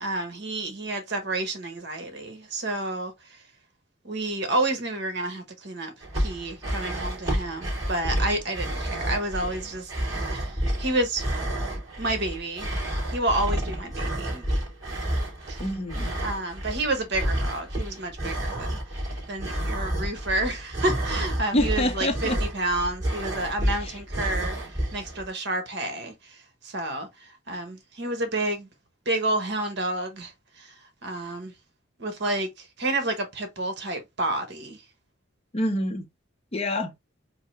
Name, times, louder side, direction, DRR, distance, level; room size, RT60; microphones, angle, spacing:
voice 1, 0.0-3.1 4.0-9.9 10.3-11.2 12.0-12.7 13.1-14.4 15.5-15.6 16.2-18.8 19.3-24.5 24.9-26.1 26.6-27.1 27.5-28.7 29.1-30.3 30.6-30.7 31.0-31.5 32.0-32.5 32.8-34.8, right 2 dB, 60° right, 1.0 m, -29 dB
sound 1, 6.0-25.3, right 1 dB, 20° right, 3.0 m, -30 dB
voice 2, 15.6-16.1 21.5-22.4 35.5-36.0 36.5-36.9, left 1 dB, 30° left, 0.7 m, -26 dB
4.5 x 2.6 x 3.1 m
head